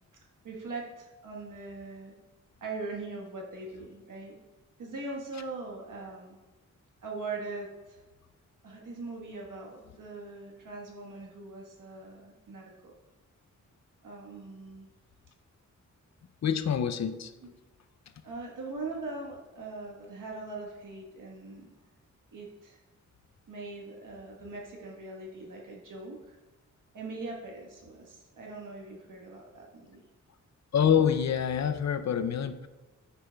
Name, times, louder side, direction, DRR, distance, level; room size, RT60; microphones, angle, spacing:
voice 1, 0.4-2.1 2.6-4.4 4.8-6.4 7.0-8.0 8.6-12.9 14.0-14.9 17.4-17.5 18.2-21.6 22.3-22.8 23.5-26.4 26.9-30.0, right 3 dB, 75° right, -1 dB, 1.4 m, -41 dB
voice 2, 16.4-17.3 30.7-32.7, left 8 dB, 60° left, 11 dB, 0.5 m, -26 dB
8.2 x 5.7 x 2.3 m, 1.1 s
cardioid pair, 60°, 31 cm